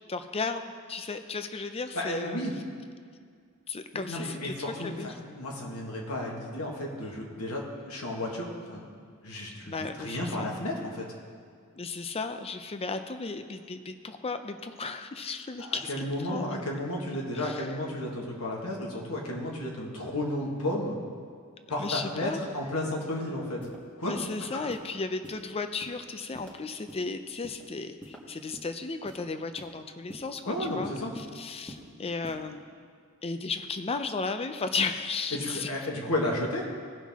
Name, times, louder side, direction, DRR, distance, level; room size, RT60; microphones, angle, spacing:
voice 1, 0.1-0.6 0.9-2.4 3.7-5.1 9.7-10.5 11.7-16.5 17.3-17.7 21.8-22.4 24.0-32.6 33.2-35.7, left 4 dB, 25° left, 9 dB, 0.5 m, -35 dB
voice 2, 1.9-2.5 3.9-8.9 9.2-11.0 15.6-21.0 21.7-23.6 24.0-24.1 30.4-31.1 35.3-36.6, left 1 dB, 80° left, -2 dB, 1.7 m, -33 dB
sound 1, 23.6-23.8 24.2-24.3 24.7-24.9 25.2-25.4 25.8-26.0 26.3-26.5 26.9-27.0 27.4-27.6 28.0-28.7 29.1-29.2 29.6-29.8 30.1-30.3 30.6-30.8 31.2-31.3 31.7-31.8 32.2-32.4, equal, 5° left, 1.2 m, -45 dB
17.5 x 5.8 x 3.6 m, 2.1 s
head